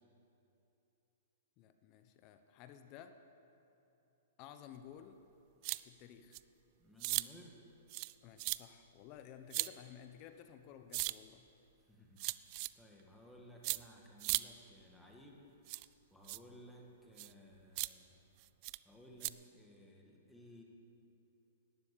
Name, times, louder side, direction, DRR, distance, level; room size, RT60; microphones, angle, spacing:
voice 1, 1.6-3.2 4.4-5.2 5.8-6.4 8.2-11.5, left 9 dB, 40° left, 9 dB, 0.9 m, -54 dB
sound 1, 5.6-5.8 6.3-6.4 7.0-7.3 7.9-8.1 8.4-8.6 9.5-9.7 10.9-11.1 12.2-12.7 13.6-13.8 14.2-14.4 15.7-15.9 16.3-16.4 17.2-17.3 17.8-17.9 18.6-18.8 19.2-19.3, right 24 dB, 45° right, 0.3 m, -36 dB
voice 2, 6.8-7.6 11.8-15.8 16.1-18.3 18.8-20.6, equal, 5° left, -1 dB, 1.9 m, -58 dB
12.5 x 10.5 x 8.5 m, 2.9 s
hypercardioid pair, 130°, 0 cm